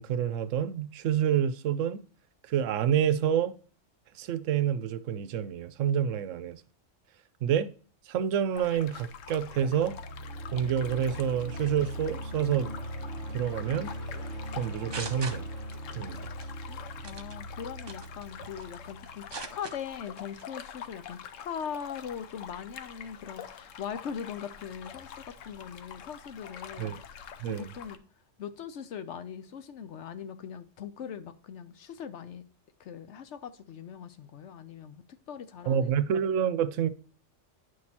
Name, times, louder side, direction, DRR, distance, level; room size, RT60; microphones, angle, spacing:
voice 1, 0.0-2.0 2.5-3.6 4.2-6.6 7.4-7.7 8.1-10.0 10.5-12.7 13.3-14.0 14.6-15.5 16.0-16.3 26.8-27.0 27.4-27.7 35.7-36.9, right 9 dB, 80° right, 1.0 m, -28 dB
sound 1, 8.5-28.0, left 8 dB, 85° left, 1.0 m, -46 dB
sound 2, 9.1-19.8, equal, 15° left, 2.0 m, -40 dB
sound 3, 14.5-15.9 16.2-16.5 17.0-17.4 17.9-18.7 19.1-19.8 20.2-20.4, right 4 dB, 35° right, 0.4 m, -41 dB
voice 2, 16.7-19.3 19.5-28.0 28.4-32.4 32.8-36.0, left 8 dB, 70° left, 0.9 m, -41 dB
9.5 x 6.3 x 2.8 m
omnidirectional pair, 1.3 m